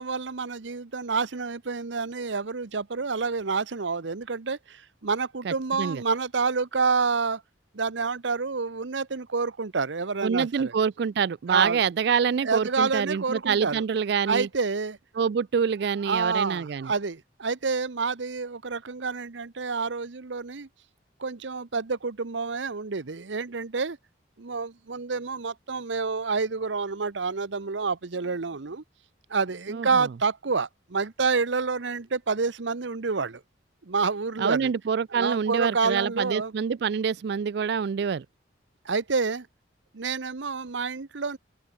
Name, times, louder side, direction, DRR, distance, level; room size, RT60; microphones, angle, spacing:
voice 1, 0.0-7.4 7.7-10.7 11.5-11.8 12.4-13.8 14.3-15.0 16.0-20.7 21.2-24.0 24.4-28.8 29.3-33.4 33.8-34.7 35.1-36.5 38.8-39.5 39.9-41.4, right 4 dB, 75° right, 0.9 m, -28 dB
voice 2, 5.4-6.0 10.2-14.5 15.2-16.9 29.7-30.1 34.4-38.3, right 6 dB, 60° right, 0.4 m, -26 dB
open air
head